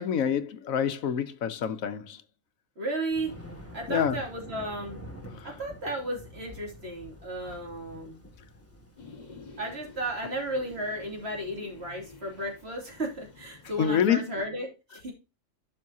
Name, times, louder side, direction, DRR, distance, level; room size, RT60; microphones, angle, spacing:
voice 1, 0.0-2.2 3.9-4.2 5.3-5.5 13.8-14.3, left 8 dB, 85° left, 1.2 m, -27 dB
voice 2, 2.8-3.3 3.7-5.0 5.4-8.2 9.6-15.1, right 1 dB, 50° right, 2.8 m, -34 dB
Thunder, 3.1-14.2, equal, 10° left, 2.0 m, -48 dB
sound 1, 9.0-14.0, left 3 dB, 35° left, 1.6 m, -50 dB
12.0 x 5.6 x 2.7 m
omnidirectional pair, 1.4 m